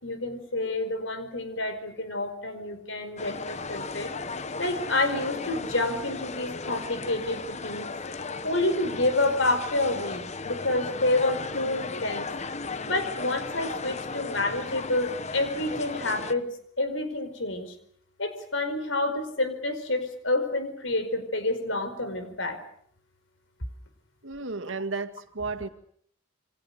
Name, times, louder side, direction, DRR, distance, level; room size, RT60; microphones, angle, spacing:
voice 1, 0.0-4.1 4.6-7.9 8.4-12.3 12.9-17.7 18.2-22.6, left 2 dB, 75° left, 9 dB, 5.1 m, -28 dB
sound 1, 3.2-16.3, left 4 dB, 35° left, 1.1 m, -36 dB
voice 2, 24.2-25.7, right 3 dB, 80° right, 8 dB, 2.1 m, -33 dB
28.5 x 24.5 x 6.8 m, 0.65 s
head